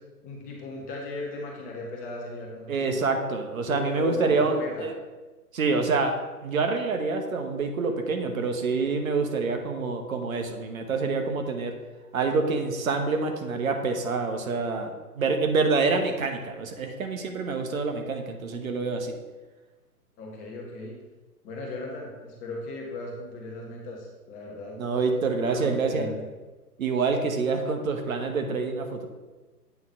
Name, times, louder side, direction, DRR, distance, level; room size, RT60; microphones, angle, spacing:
voice 1, 0.2-2.9 3.7-4.9 20.2-21.0 21.4-24.8 25.4-26.2, left 2 dB, 15° left, -1 dB, 0.9 m, -36 dB
voice 2, 2.7-4.9 5.5-6.1 6.4-11.8 12.1-19.1 24.8-26.1 26.8-29.1, right 4 dB, 60° right, 5 dB, 1.0 m, -27 dB
8.2 x 3.8 x 4.4 m, 1.2 s
figure-of-eight pair, 125°, 47 cm